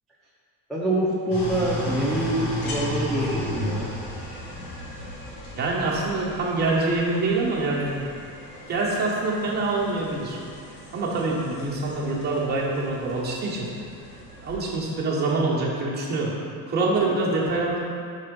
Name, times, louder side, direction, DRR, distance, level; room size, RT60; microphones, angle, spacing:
voice 1, 0.7-3.9 17.1-17.2, right 1 dB, ahead, -9 dB, 0.4 m, -25 dB
sound 1, 1.3-14.6, equal, 90° left, 1.5 m, -35 dB
voice 2, 5.6-8.1 8.7-10.4 10.9-13.7 14.4-16.3 16.7-17.8, right 3 dB, 25° right, -5 dB, 0.9 m, -25 dB
5.5 x 3.8 x 5.1 m, 2.4 s
cardioid pair, 175°, 38 cm